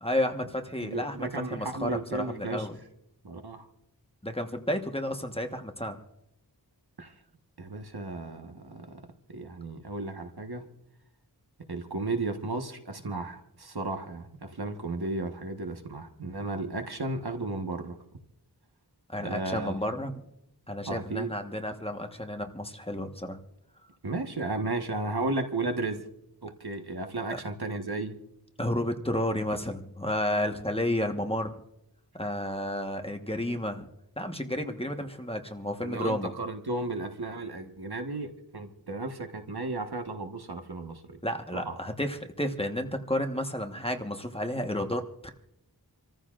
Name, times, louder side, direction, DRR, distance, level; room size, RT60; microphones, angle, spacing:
voice 1, 0.0-2.7 4.2-6.0 19.1-20.2 20.7-23.4 27.3-27.4 28.6-31.5 32.1-33.9 34.2-36.3 41.2-45.3, left 1 dB, 15° left, 1.2 m, -31 dB
voice 2, 0.8-2.7 3.2-3.7 7.0-7.1 7.6-9.0 9.3-10.6 11.7-18.0 19.2-19.8 20.9-21.3 24.0-26.0 26.4-28.2 35.8-41.2 41.5-41.8, right 2 dB, 70° right, 1.4 m, -34 dB
27.5 x 14.5 x 2.5 m
wide cardioid pair, 45°, 40 cm